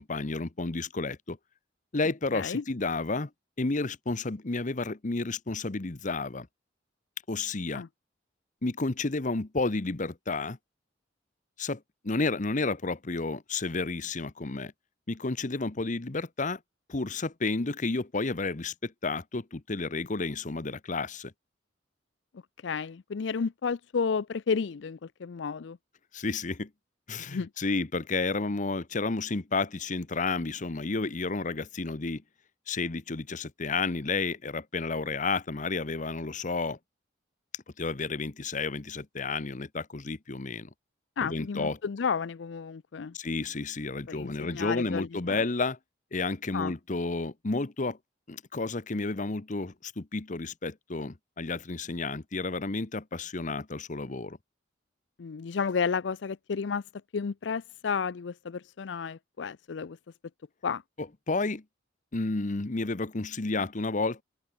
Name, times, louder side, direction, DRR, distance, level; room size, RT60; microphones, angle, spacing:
voice 1, 0.0-1.4 1.9-3.3 3.6-6.5 7.3-7.8 8.6-10.6 11.6-14.7 15.1-16.6 16.9-21.3 26.1-26.7 27.1-32.2 32.7-36.8 37.8-40.7 41.2-41.8 43.1-45.8 46.1-48.0 48.3-54.4 61.0-61.6 62.1-64.2, left 3 dB, 45° left, 1.0 m, -31 dB
voice 2, 2.3-2.6 7.7-7.9 22.6-25.8 27.2-27.5 41.2-43.1 44.1-45.4 46.5-46.7 55.2-56.8 57.1-60.0 60.6-60.8, left 5 dB, 70° left, 0.5 m, -32 dB
head